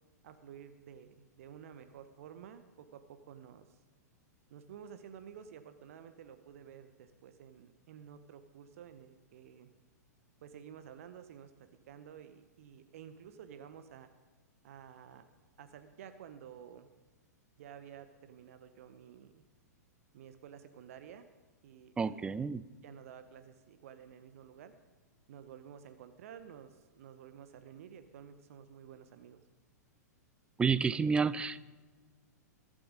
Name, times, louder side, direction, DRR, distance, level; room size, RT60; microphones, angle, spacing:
voice 1, 0.2-3.8 4.5-9.7 10.4-14.1 14.6-15.2 15.6-16.9 17.6-19.4 20.1-21.2 21.6-22.5 22.8-24.7 25.3-29.4, right 8 dB, 55° right, 10 dB, 1.0 m, -52 dB
voice 2, 22.0-22.6 30.6-31.6, right 5 dB, 10° right, 17 dB, 0.5 m, -30 dB
22.0 x 7.6 x 5.1 m, 1.4 s
figure-of-eight pair, 105°, 9 cm